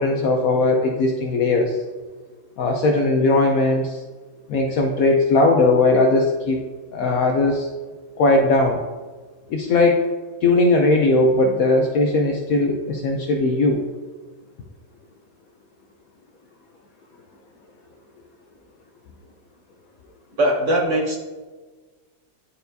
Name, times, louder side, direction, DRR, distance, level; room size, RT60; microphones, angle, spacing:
voice 1, 0.0-1.8 2.6-4.0 4.5-6.6 6.9-7.7 8.2-8.8 9.5-10.1 10.4-13.8, left 2 dB, 70° left, 2 dB, 0.8 m, -18 dB
voice 2, 20.4-21.2, right 1 dB, 55° right, 0 dB, 0.9 m, -20 dB
10.5 x 4.3 x 2.7 m, 1.4 s
omnidirectional pair, 2.0 m